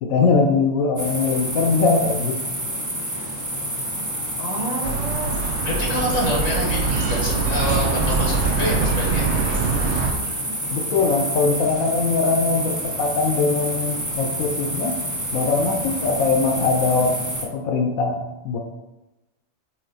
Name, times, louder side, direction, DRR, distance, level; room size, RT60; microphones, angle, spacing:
voice 1, 0.0-2.4 10.7-15.0 15.3-18.6, left 4 dB, 85° left, 4 dB, 1.1 m, -21 dB
sound 1, 1.0-17.4, right 1 dB, 15° right, 1.2 m, -28 dB
voice 2, 4.4-10.2, left 1 dB, 65° left, -3 dB, 2.1 m, -28 dB
sound 2, 4.8-10.1, right 4 dB, 60° right, 1.0 m, -23 dB
8.8 x 3.2 x 3.9 m, 1.0 s
omnidirectional pair, 1.4 m